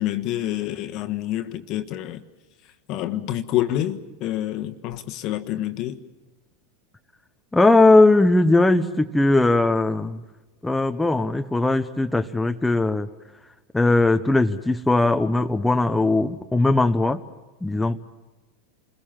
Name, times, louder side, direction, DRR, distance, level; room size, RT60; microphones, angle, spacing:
voice 1, 0.0-2.2 2.9-6.0, left 13 dB, 50° left, 1.4 m, -27 dB
voice 2, 7.5-10.2 10.6-13.1 13.7-17.2 17.6-18.0, left 2 dB, 10° left, 0.9 m, -19 dB
28.5 x 21.5 x 7.3 m
figure-of-eight pair, 85°, 0 cm